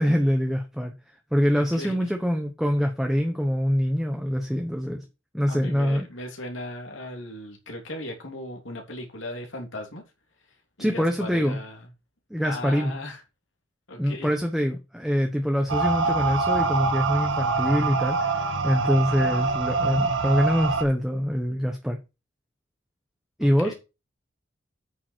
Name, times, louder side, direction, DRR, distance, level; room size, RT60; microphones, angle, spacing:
voice 1, 0.0-5.0 5.3-6.1 10.8-11.6 12.3-12.9 14.0-22.0 23.4-23.7, equal, ahead, 1.0 m, -24 dB
voice 2, 5.5-10.0 10.8-11.8 12.4-13.2 13.9-14.3 23.4-23.7, left 1 dB, 75° left, 3.1 m, -37 dB
sound 1, 15.7-20.8, right 3 dB, 80° right, 1.6 m, -25 dB
9.1 x 7.0 x 4.6 m
head